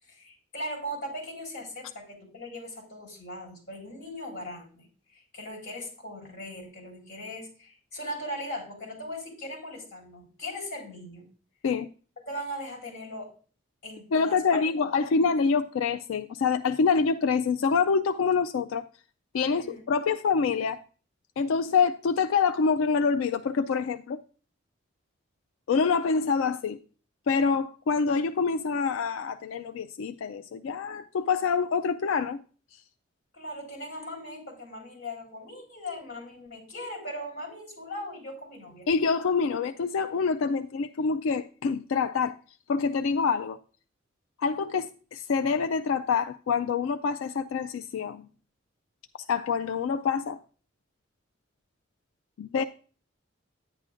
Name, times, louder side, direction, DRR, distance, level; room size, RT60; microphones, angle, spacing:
voice 1, 0.0-11.3 12.3-13.3 13.8-14.6 15.2-15.3 19.5-19.8 33.3-38.9, equal, 50° left, 4.5 m, -39 dB
voice 2, 14.1-18.9 19.3-20.8 21.4-24.2 25.7-26.8 27.3-32.4 32.7-32.8 38.9-42.4 42.7-43.6 44.4-48.3 49.3-50.4 52.4-52.6, left 5 dB, 90° left, 0.4 m, -26 dB
10.5 x 9.7 x 2.5 m
head